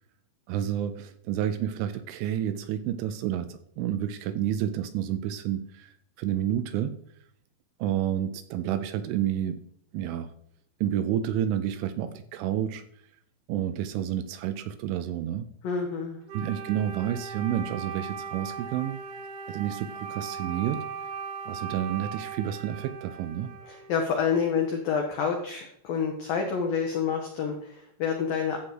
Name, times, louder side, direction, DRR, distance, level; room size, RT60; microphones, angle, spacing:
voice 1, 0.5-5.9 6.2-7.0 7.8-9.6 9.9-10.3 10.8-12.8 13.5-15.5 16.3-19.0 19.5-20.9 21.5-23.5, right 10 dB, 80° right, 11 dB, 2.9 m, -30 dB
voice 2, 15.6-16.2 23.7-28.6, left 6 dB, 85° left, 2 dB, 2.0 m, -28 dB
Wind instrument woodwind instrument, 16.3-24.0, right 6 dB, 65° right, 3.1 m, -38 dB
12.5 x 4.3 x 7.8 m, 0.67 s
omnidirectional pair, 5.9 m